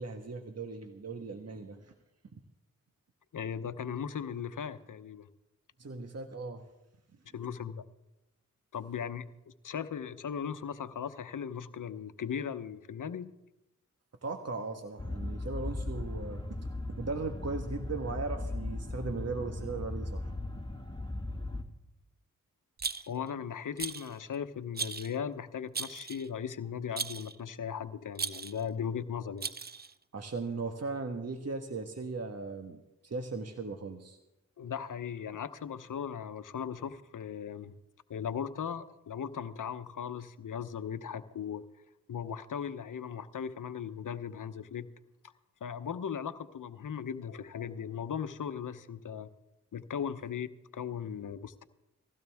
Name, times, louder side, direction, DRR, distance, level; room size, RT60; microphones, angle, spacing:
voice 1, 0.0-1.9 5.8-6.6 14.2-16.4 17.0-20.3 30.1-34.2, right 3 dB, 50° right, 5 dB, 1.5 m, -38 dB
voice 2, 3.3-5.3 7.3-7.8 8.7-13.3 23.1-29.5 34.6-37.7 38.1-41.6 42.1-44.9 45.6-49.3 49.7-50.5 50.7-51.6, left 7 dB, 70° left, 12 dB, 1.0 m, -38 dB
sound 1, 15.0-21.6, left 2 dB, 15° left, 2.6 m, -37 dB
Rattle, 22.8-23.3 23.8-24.2 24.7-25.1 25.7-26.3 27.0-27.3 28.1-28.6 29.4-29.9, right 5 dB, 30° right, 0.7 m, -37 dB
20.0 x 15.5 x 3.6 m, 0.95 s
cardioid pair, 45°, 32 cm